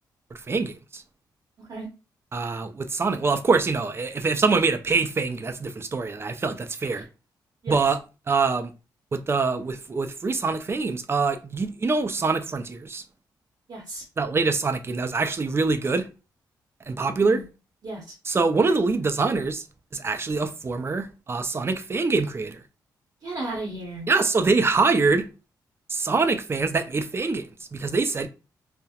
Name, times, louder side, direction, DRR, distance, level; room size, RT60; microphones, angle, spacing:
voice 1, 0.5-1.0 2.3-7.0 7.7-8.0 8.3-8.7 9.1-13.0 14.2-16.1 16.9-17.4 18.3-19.6 19.9-22.6 24.1-25.3 25.9-28.3, right 4 dB, 30° right, 0.4 m, -24 dB
voice 2, 1.6-1.9 6.9-7.0 7.6-7.8 13.7-14.1 17.2-17.4 17.8-18.2 23.2-24.1, right 2 dB, 55° right, 0.7 m, -34 dB
2.8 x 2.0 x 2.3 m
cardioid pair, 75°, 8 cm